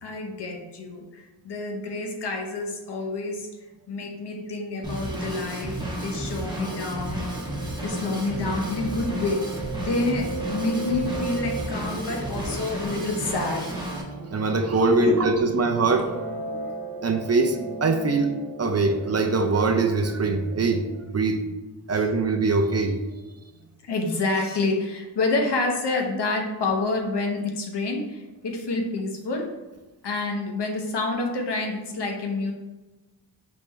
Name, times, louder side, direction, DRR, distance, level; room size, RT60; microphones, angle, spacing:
voice 1, 0.0-3.5 3.9-7.3 7.8-9.5 9.8-13.7 14.7-15.3 16.5-16.7 21.9-22.0 23.8-29.5 30.0-32.5, left 3 dB, 70° left, 2 dB, 1.0 m, -28 dB
Drum kit / Drum, 4.8-14.0, right 1 dB, 10° right, 1.3 m, -32 dB
Piano, 6.6-21.0, right 2 dB, 55° right, 1.1 m, -36 dB
voice 2, 14.3-16.1 17.0-20.8 21.1-21.4 21.9-23.0, right 3 dB, 40° right, 5 dB, 0.4 m, -23 dB
5.2 x 3.3 x 3.1 m, 1.1 s
wide cardioid pair, 85°, 43 cm